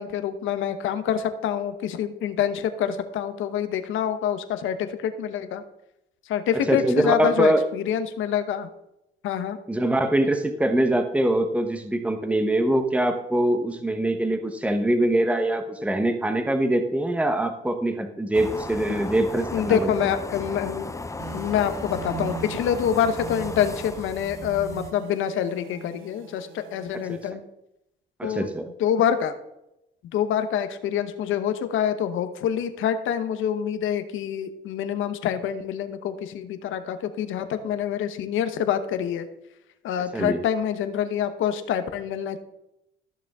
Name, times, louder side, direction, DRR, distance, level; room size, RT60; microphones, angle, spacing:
voice 1, 0.0-5.6 6.3-8.7 9.2-9.6 18.9-19.1 19.5-20.9 21.3-27.4 28.2-28.5 28.8-29.3 30.1-39.3 39.8-42.4, left 9 dB, 85° left, 10 dB, 1.0 m, -26 dB
voice 2, 6.5-7.6 9.7-19.9 27.1-27.2 28.2-28.6 40.1-40.4, right 1 dB, 5° right, 6 dB, 1.0 m, -23 dB
sound 1, 18.3-24.9, left 3 dB, 15° left, 0.7 m, -35 dB
sound 2, 21.2-27.3, right 8 dB, 90° right, 0.7 m, -41 dB
14.0 x 6.8 x 3.6 m, 0.85 s
cardioid pair, 90°, 20 cm